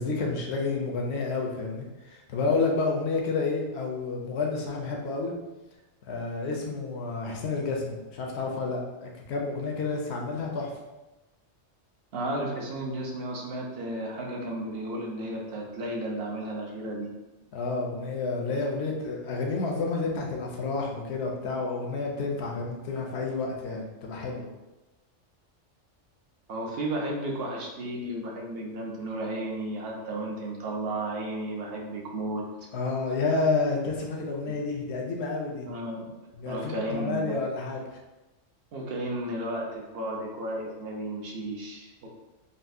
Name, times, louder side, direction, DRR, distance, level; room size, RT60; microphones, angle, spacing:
voice 1, 0.0-5.3 6.0-10.7 17.5-24.4 32.7-35.7 36.4-37.8, left 3 dB, 65° left, 0 dB, 0.8 m, -30 dB
voice 2, 12.1-17.1 26.5-32.4 34.1-34.2 34.5-34.6 35.6-36.1 36.4-37.4 38.7-42.1, right 1 dB, 60° right, -1 dB, 0.8 m, -33 dB
4.0 x 2.1 x 2.6 m, 1.1 s
omnidirectional pair, 1.3 m